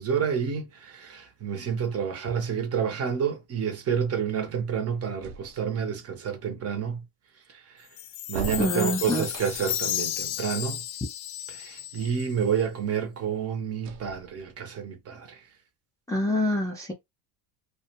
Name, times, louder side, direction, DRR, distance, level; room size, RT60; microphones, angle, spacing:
voice 1, 0.0-7.0 8.3-10.8 11.5-15.3, right 7 dB, 35° right, 0.7 m, -29 dB
sound 1, 5.2-6.0 8.3-9.9 13.8-14.8, right 6 dB, 75° right, 0.8 m, -39 dB
Chime, 8.0-12.4, left 12 dB, 60° left, 0.5 m, -33 dB
voice 2, 8.6-9.3 16.1-16.9, left 1 dB, 10° left, 0.4 m, -26 dB
2.4 x 2.2 x 2.8 m
supercardioid pair, 115°, 44 cm